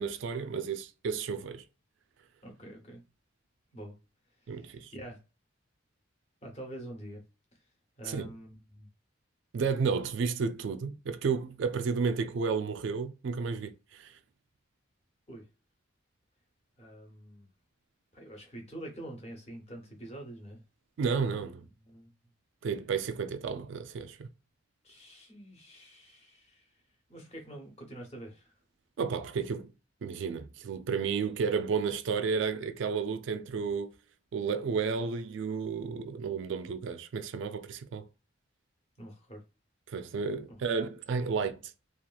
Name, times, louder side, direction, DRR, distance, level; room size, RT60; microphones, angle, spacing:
voice 1, 0.0-1.6 4.5-4.9 8.1-8.3 9.5-14.1 21.0-21.6 22.6-24.3 29.0-29.7 30.0-33.9 34.3-38.0 39.9-41.7, right 5 dB, 65° right, 0.3 m, -32 dB
voice 2, 2.4-3.0 3.7-3.9 4.4-5.2 6.4-7.2 8.0-8.9 15.3-15.4 16.8-17.5 18.1-20.6 21.8-22.1 24.8-26.7 27.1-28.5 39.0-39.4 40.5-40.6, right 1 dB, 30° left, 0.9 m, -46 dB
2.9 x 2.4 x 2.2 m
head